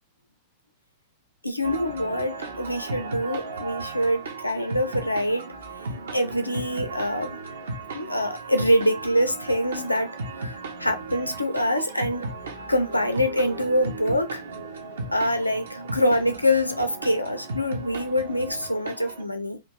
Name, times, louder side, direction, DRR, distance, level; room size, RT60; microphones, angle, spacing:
voice 1, 1.4-5.5 6.1-7.4 7.9-12.3 12.7-14.4 15.1-19.6, equal, 90° left, 0.3 m, -25 dB
sound 1, 1.6-19.2, right 3 dB, 65° right, 0.5 m, -36 dB
2.5 x 2.3 x 3.4 m
figure-of-eight pair, 90°, 0 cm